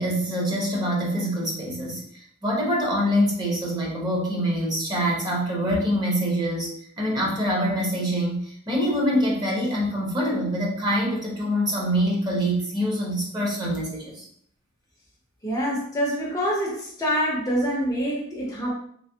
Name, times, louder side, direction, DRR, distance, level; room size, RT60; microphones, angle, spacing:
voice 1, 0.0-2.0 2.4-6.7 7.0-14.2, equal, 20° right, -3 dB, 1.0 m, -25 dB
voice 2, 15.4-18.7, equal, 15° left, -3 dB, 0.7 m, -26 dB
3.3 x 3.3 x 2.7 m, 0.62 s
head